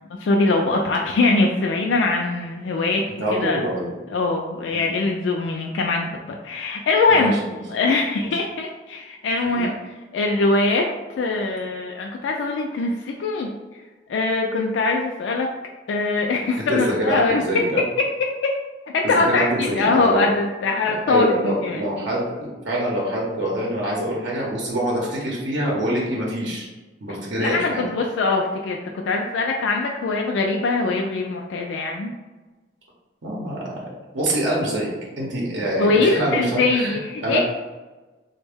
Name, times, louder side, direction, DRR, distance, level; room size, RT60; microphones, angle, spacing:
voice 1, 0.2-3.0 3.3-3.6 4.1-7.3 7.7-10.9 11.2-13.5 14.1-15.5 15.9-17.8 18.4-18.5 18.9-21.8 27.4-32.1 35.8-37.4, left 3 dB, 85° left, 1 dB, 0.3 m, -22 dB
voice 2, 3.2-3.9 4.7-4.8 7.1-7.4 8.2-8.3 9.5-9.6 16.7-17.8 19.0-20.2 20.9-26.7 27.0-27.9 33.2-37.4, right 1 dB, 80° right, -4 dB, 0.7 m, -25 dB
3.4 x 2.1 x 3.4 m, 1.2 s
head